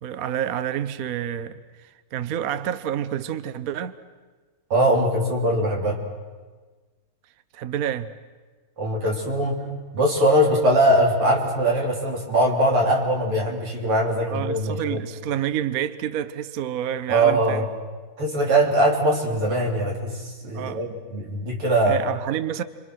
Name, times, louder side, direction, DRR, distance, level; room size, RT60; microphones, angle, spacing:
voice 1, 0.0-4.0 7.5-8.1 14.3-17.7 20.5-20.8 21.8-22.6, right 10 dB, 55° right, 1.0 m, -28 dB
voice 2, 4.7-6.0 8.8-9.6 9.9-15.0 17.1-17.6 18.2-22.0, right 1 dB, 85° right, 4.4 m, -21 dB
29.5 x 24.5 x 6.3 m
omnidirectional pair, 2.4 m